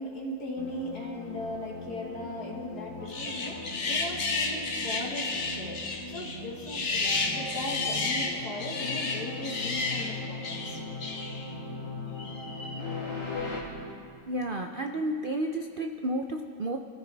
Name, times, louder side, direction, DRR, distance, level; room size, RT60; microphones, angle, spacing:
voice 1, 0.0-10.8, left 1 dB, 65° left, -1 dB, 2.0 m, -38 dB
sound 1, 0.6-13.6, left 2 dB, 80° left, 3.7 m, -39 dB
sound 2, 3.1-11.5 12.2-12.8, left 3 dB, 45° left, 1.5 m, -32 dB
voice 2, 14.2-16.8, right 1 dB, 90° right, 4 dB, 0.4 m, -31 dB
26.5 x 15.0 x 3.4 m, 2.5 s
omnidirectional pair, 1.9 m